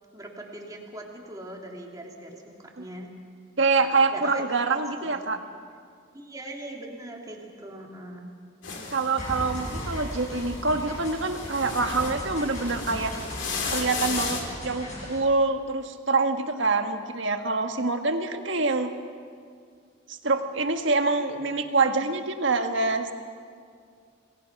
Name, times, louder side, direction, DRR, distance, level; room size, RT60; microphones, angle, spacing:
voice 1, 0.1-3.1 4.1-4.7 5.0-5.3 6.1-8.3, right 1 dB, 20° right, 0 dB, 2.8 m, -40 dB
voice 2, 3.6-5.4 8.9-13.1 13.7-18.9 20.1-23.1, right 3 dB, 70° right, 6 dB, 1.6 m, -25 dB
sound 1, 8.6-14.4, left 4 dB, 65° left, 3.2 m, -35 dB
sound 2, 9.2-15.2, equal, 40° left, 7.9 m, -37 dB
27.5 x 19.5 x 6.0 m, 2.2 s
head